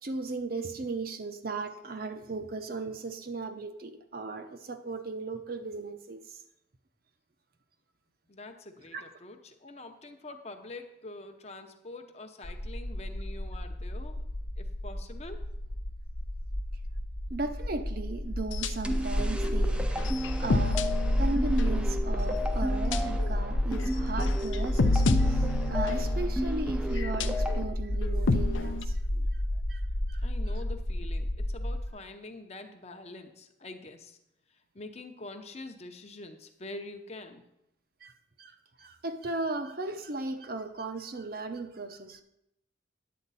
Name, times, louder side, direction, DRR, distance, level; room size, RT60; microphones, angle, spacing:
voice 1, 0.0-6.4 8.9-9.1 17.3-19.8 20.4-20.8 21.2-29.4 29.7-29.8 30.1-30.2 38.0-38.1 38.4-42.2, right 3 dB, 50° right, 7 dB, 0.7 m, -36 dB
voice 2, 8.3-14.2 14.6-15.5 30.2-34.2 34.7-37.4, left 2 dB, 35° left, 6 dB, 0.8 m, -45 dB
sound 1, 12.4-31.9, left 1 dB, 65° left, 1.1 m, -31 dB
sound 2, 18.5-19.0 19.4-19.6 20.0-22.0 22.9-23.3 23.7-23.9 24.3-26.3 27.0-27.6 28.0-28.8, left 2 dB, 85° left, 0.6 m, -29 dB
sound 3, 18.8-27.6, equal, 5° right, 0.5 m, -35 dB
10.5 x 8.4 x 4.1 m, 0.83 s
head